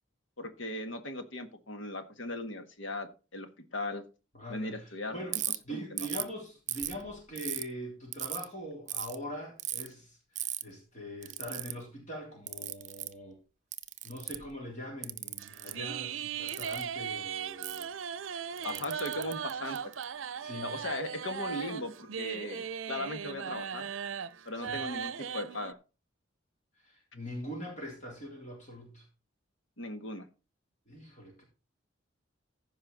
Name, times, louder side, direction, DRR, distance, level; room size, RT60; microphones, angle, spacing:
voice 1, 0.4-4.1 4.5-5.4 5.7-6.1 18.6-19.8 20.6-23.9 24.5-25.8 29.8-30.3, left 2 dB, 75° left, 7 dB, 1.6 m, -38 dB
voice 2, 4.3-13.4 14.0-17.9 18.6-18.9 20.4-20.8 24.6-24.9 26.8-29.0 30.9-31.4, equal, 40° left, -1 dB, 3.5 m, -42 dB
Ratchet pawl, 5.3-5.6 6.0-6.3 6.7-7.6 8.1-8.4 8.9-9.1 9.6-9.9 10.4-10.6 11.2-11.7 12.5-13.1 13.7-14.5 15.0-15.7 16.5-16.8 17.6-17.8 18.6-20.0, right 13 dB, 40° right, 0.6 m, -36 dB
Carnatic varnam by Ramakrishnamurthy in Sahana raaga, 15.4-25.7, right 7 dB, 90° right, 0.6 m, -38 dB
15.0 x 5.5 x 4.0 m, 0.32 s
head